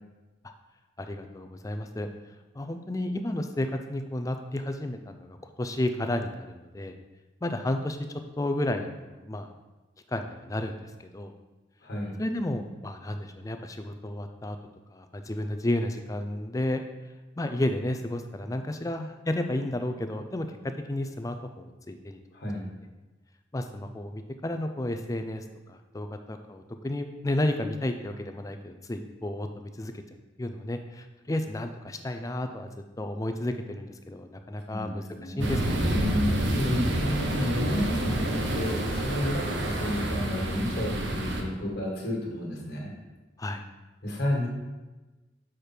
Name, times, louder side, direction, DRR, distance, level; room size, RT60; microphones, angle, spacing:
voice 1, 1.0-2.1 2.5-7.0 7.4-8.0 8.4-9.5 10.1-11.3 12.2-14.6 14.9-16.8 17.4-22.2 23.5-30.0 30.4-32.7 33.0-35.9 43.4-43.6, left 1 dB, 20° left, 7 dB, 0.4 m, -32 dB
voice 2, 11.8-12.2 22.3-22.7 34.7-35.5 35.9-42.9 44.0-44.5, left 1 dB, 55° left, -2 dB, 1.7 m, -31 dB
sound 1, 35.4-41.4, right 1 dB, 80° right, 1.0 m, -28 dB
6.5 x 5.0 x 4.4 m, 1.2 s
head